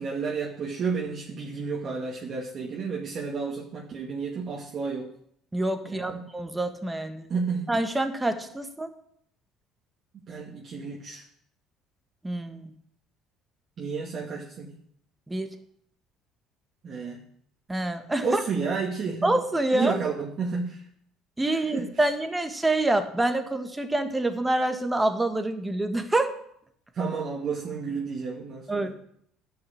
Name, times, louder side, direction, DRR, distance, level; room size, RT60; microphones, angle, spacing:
voice 1, 0.0-5.1 5.8-6.3 7.3-7.7 10.3-11.2 13.8-14.8 16.8-17.2 18.2-19.3 19.7-20.8 21.7-21.9 26.9-28.9, right 5 dB, 45° right, -3 dB, 2.2 m, -31 dB
voice 2, 5.5-7.3 7.7-8.9 12.2-12.7 15.3-15.5 17.7-18.4 19.2-19.9 21.4-26.3 28.7-28.9, right 2 dB, 15° right, 7 dB, 1.6 m, -26 dB
11.5 x 5.8 x 8.6 m, 0.69 s
supercardioid pair, 80°, 0 cm